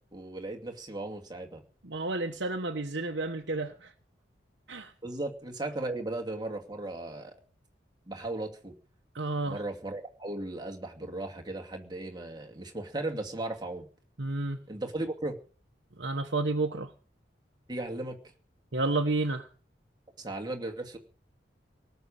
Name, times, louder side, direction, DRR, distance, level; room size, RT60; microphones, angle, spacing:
voice 1, 0.1-1.6 5.0-7.3 8.1-8.7 9.5-13.9 14.7-15.3 17.7-18.2 20.2-21.0, right 2 dB, 25° right, 3 dB, 2.4 m, -36 dB
voice 2, 1.8-3.9 4.7-4.9 9.1-9.6 14.2-14.6 16.0-16.9 18.7-19.5, right 2 dB, 80° right, 2 dB, 1.3 m, -31 dB
19.0 x 6.9 x 8.8 m, 0.40 s
head